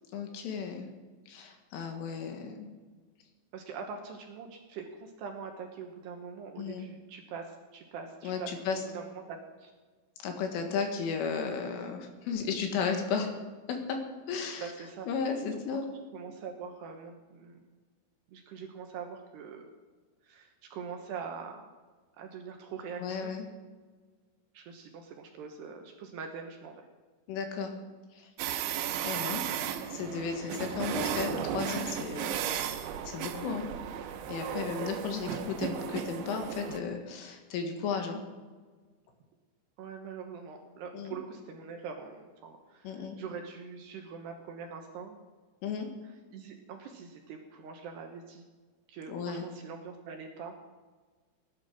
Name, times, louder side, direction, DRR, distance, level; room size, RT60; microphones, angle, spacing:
voice 1, 0.1-0.9 1.3-2.7 6.6-6.9 8.2-8.8 10.2-13.3 13.7-14.0 14.3-14.7 15.1-15.9 23.0-23.5 27.3-27.7 28.1-28.3 29.0-29.5 29.9-33.7 34.3-38.2 40.9-41.2 42.8-43.2 45.6-45.9 49.1-49.5, left 6 dB, 75° left, 4 dB, 4.3 m, -34 dB
voice 2, 3.5-9.7 14.6-15.1 16.1-17.6 18.3-19.6 20.2-21.7 22.2-23.3 24.5-26.9 35.2-35.4 39.8-45.2 46.3-48.4 48.9-50.6, right 6 dB, 70° right, 3 dB, 2.8 m, -43 dB
sound 1, 28.4-36.8, right 9 dB, 90° right, 3.7 m, -35 dB
17.5 x 11.5 x 6.2 m, 1.4 s
omnidirectional pair, 5.8 m